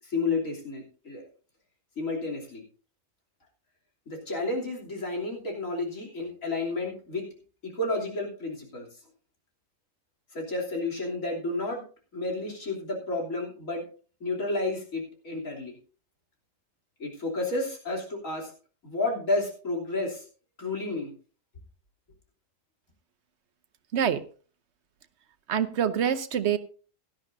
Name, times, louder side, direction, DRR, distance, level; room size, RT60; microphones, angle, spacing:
voice 1, 0.0-1.2 2.0-2.6 4.1-7.2 7.6-8.9 10.3-11.8 12.1-13.8 14.2-15.7 17.0-18.5 18.8-20.2 20.6-21.1, left 2 dB, 85° left, -2 dB, 3.6 m, -31 dB
voice 2, 25.5-26.6, right 8 dB, 60° right, 11 dB, 1.1 m, -25 dB
17.0 x 11.5 x 2.7 m, 0.38 s
omnidirectional pair, 1.4 m